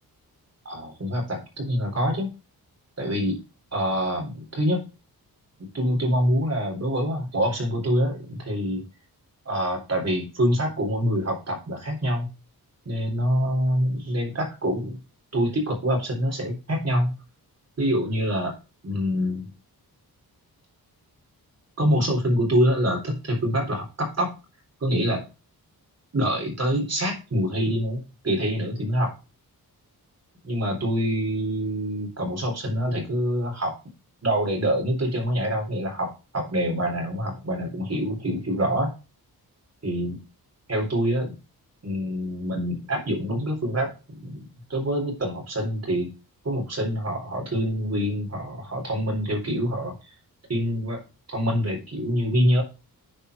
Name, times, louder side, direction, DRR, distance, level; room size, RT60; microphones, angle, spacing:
voice 1, 0.7-2.3 3.0-3.4 3.7-4.8 5.7-8.8 9.5-12.3 12.9-15.0 15.3-17.1 17.8-18.5 18.8-19.5 21.8-24.3 24.8-25.2 26.1-29.1 30.4-33.7 34.2-38.9 39.8-40.2 40.7-41.3 41.8-43.9 44.2-44.4 44.7-46.1 46.4-50.1 50.5-51.0 51.3-52.6, equal, 45° right, 1 dB, 3.8 m, -25 dB
10.0 x 4.6 x 5.0 m, 0.30 s
wide cardioid pair, 110°, 37 cm